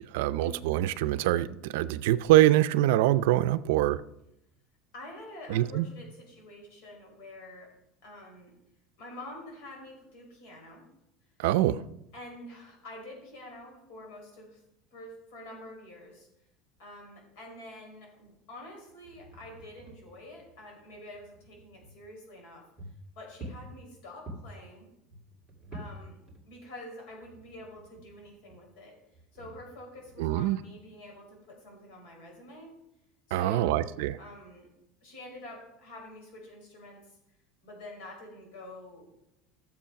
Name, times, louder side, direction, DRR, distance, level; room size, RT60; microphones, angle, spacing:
voice 1, 0.1-4.0 5.5-5.9 11.4-11.8 30.2-30.6 33.3-34.2, right 14 dB, 75° right, 0.5 m, -24 dB
voice 2, 4.9-7.7 8.0-8.5 9.0-10.9 12.1-14.6 14.9-16.3 16.8-22.7 23.2-24.9 25.7-26.2 26.5-29.0 29.3-32.8 33.3-34.7 35.0-37.2 37.6-39.1, left 1 dB, 60° left, 5.2 m, -47 dB
sound 1, 18.9-22.0 22.4-22.5 22.8-24.6 25.1-26.8 27.1-28.6 29.1-30.4, right 1 dB, 10° right, 2.1 m, -48 dB
14.0 x 7.1 x 5.8 m
cardioid pair, 175°, 0 cm